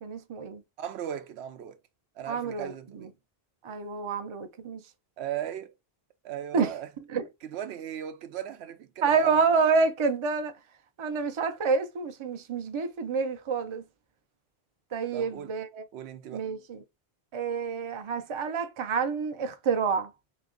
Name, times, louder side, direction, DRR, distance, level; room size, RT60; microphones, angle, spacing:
voice 1, 0.0-0.6 2.3-3.1 3.6-4.8 6.5-6.7 7.1-7.3 9.0-10.5 11.0-13.8 14.9-15.8 16.3-16.8 17.3-20.1, right 5 dB, 40° right, 0.5 m, -28 dB
voice 2, 0.8-1.8 2.2-3.1 5.2-5.7 6.2-6.9 7.4-9.4 15.1-15.5 15.9-16.5, right 10 dB, 85° right, 0.8 m, -37 dB
3.5 x 2.9 x 3.7 m
omnidirectional pair, 1.1 m